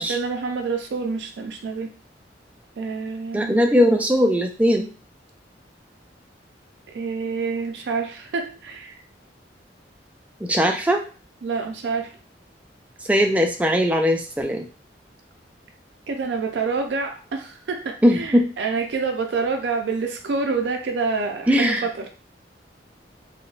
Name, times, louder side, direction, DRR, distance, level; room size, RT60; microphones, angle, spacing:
voice 1, 0.0-1.9 2.8-3.6 6.9-8.9 11.4-12.2 16.1-22.1, right 4 dB, 80° right, 4 dB, 0.4 m, -27 dB
voice 2, 3.3-4.9 10.4-11.0 13.1-14.6 18.0-18.5 21.5-22.1, equal, 10° right, 3 dB, 0.3 m, -19 dB
3.7 x 2.1 x 2.4 m, 0.37 s
head